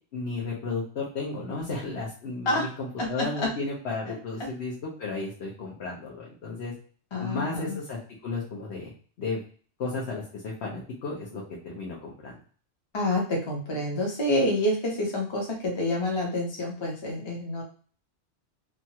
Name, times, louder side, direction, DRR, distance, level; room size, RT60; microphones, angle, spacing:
voice 1, 0.1-6.7 7.2-8.9 9.2-9.4 9.8-12.3, left 3 dB, 65° left, -4 dB, 1.0 m, -33 dB
voice 2, 7.1-7.8 12.9-17.6, left 1 dB, 30° left, -1 dB, 0.6 m, -28 dB
2.9 x 2.2 x 2.8 m, 0.43 s
omnidirectional pair, 1.2 m